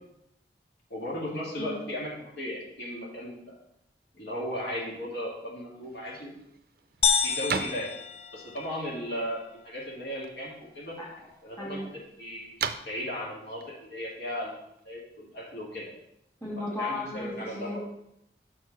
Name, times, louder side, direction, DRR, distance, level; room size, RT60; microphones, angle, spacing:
voice 1, 0.9-3.6 4.1-6.3 7.2-7.9 8.3-11.0 11.4-11.9 12.2-12.6 12.8-14.6 14.8-15.9 16.6-17.8, left 1 dB, 70° left, -4 dB, 2.2 m, -36 dB
sound 1, 5.8-15.0, right 6 dB, 55° right, 0.4 m, -41 dB
sound 2, 7.0-9.0, left 7 dB, 35° left, 0.4 m, -28 dB
voice 2, 11.0-11.3 11.6-11.9 16.4-17.8, left 2 dB, 15° left, -6 dB, 2.1 m, -35 dB
6.2 x 4.6 x 6.0 m, 0.80 s
head